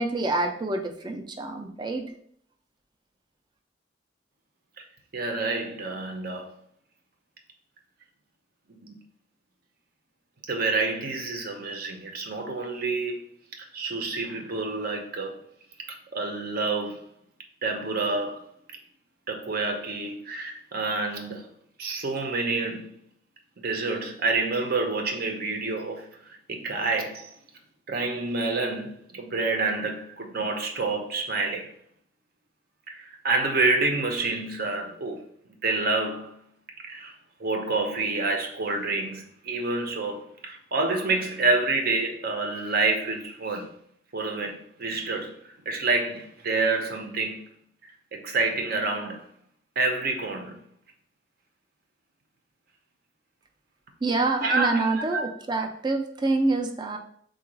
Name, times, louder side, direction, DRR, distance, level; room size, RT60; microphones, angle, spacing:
voice 1, 0.0-2.0 54.0-57.0, right 2 dB, 25° right, 0.4 m, -27 dB
voice 2, 5.1-6.5 8.8-9.0 10.5-13.3 13.5-15.3 15.9-17.0 17.6-18.4 19.3-21.5 21.8-22.9 23.6-27.3 27.9-31.7 32.9-35.2 35.6-36.4 36.9-37.1 37.4-43.7 44.1-47.4 48.1-49.2 49.8-50.5 54.4-55.3, right 3 dB, 55° right, 0.7 m, -28 dB
3.8 x 2.3 x 4.6 m
head